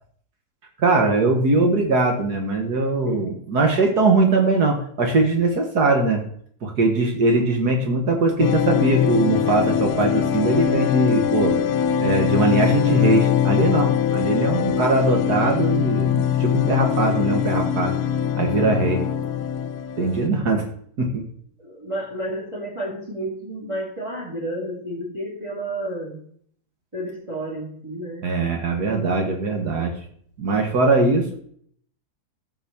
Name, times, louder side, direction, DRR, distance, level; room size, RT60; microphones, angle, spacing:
voice 1, 0.8-6.2 6.6-11.5 12.0-17.9 18.4-19.0 20.0-20.6 21.0-21.2 28.2-29.9 30.4-31.3, right 3 dB, 80° right, 2 dB, 2.2 m, -21 dB
voice 2, 3.0-3.4 20.2-20.4 21.6-26.2 26.9-28.3, right 1 dB, 20° right, -3 dB, 3.2 m, -31 dB
sound 1, 8.4-20.3, left 9 dB, 75° left, 1.2 m, -22 dB
15.0 x 5.4 x 7.1 m, 0.62 s
omnidirectional pair, 1.7 m